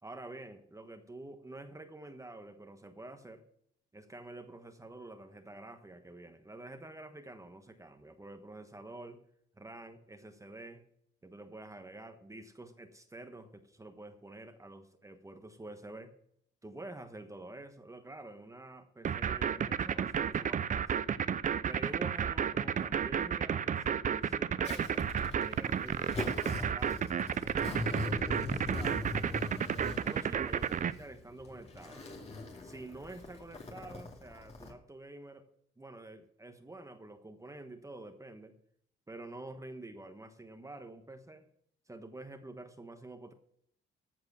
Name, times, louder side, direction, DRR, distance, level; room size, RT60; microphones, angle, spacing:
voice 1, 0.0-3.4 3.9-9.2 9.6-10.8 11.2-16.1 16.6-21.1 21.6-25.0 25.4-29.6 30.0-32.1 32.6-35.5 35.8-38.5 39.1-41.4 41.9-43.3, right 2 dB, 15° right, 7 dB, 1.2 m, -48 dB
sound 1, 19.0-30.9, right 8 dB, 40° right, 0.6 m, -31 dB
Zipper (clothing), 24.6-34.7, left 2 dB, 30° left, 2.4 m, -41 dB
14.5 x 4.8 x 7.2 m, 0.69 s
cardioid pair, 90°, 20 cm